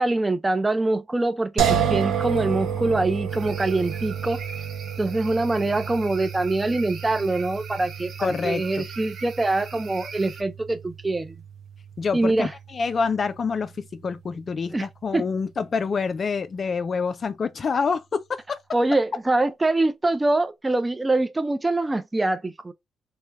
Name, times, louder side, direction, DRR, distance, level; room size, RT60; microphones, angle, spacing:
voice 1, 0.0-4.4 5.0-11.3 12.1-12.5 14.7-14.9 15.1-15.2 18.7-22.7, right 2 dB, 20° right, 0.4 m, -24 dB
sound 1, 1.6-14.6, right 8 dB, 85° right, 0.8 m, -31 dB
sound 2, 3.3-10.4, right 5 dB, 65° right, 1.2 m, -41 dB
voice 2, 8.2-8.8 12.0-18.6, left 5 dB, 45° left, 0.3 m, -27 dB
3.2 x 2.1 x 3.3 m
cardioid pair, 80°, 0 cm